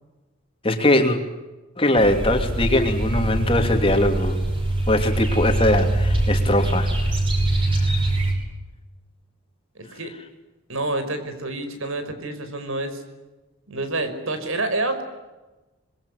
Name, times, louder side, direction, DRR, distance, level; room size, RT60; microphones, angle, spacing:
voice 1, 0.6-1.2 1.8-4.4 4.9-7.0 7.7-8.1, left 1 dB, 25° left, 5 dB, 3.0 m, -21 dB
sound 1, 2.0-8.3, right 1 dB, 25° right, 7.7 m, -23 dB
voice 2, 9.8-10.1 10.7-13.0 13.7-15.0, right 2 dB, 75° right, 9 dB, 5.4 m, -28 dB
26.0 x 22.0 x 9.8 m, 1.1 s
head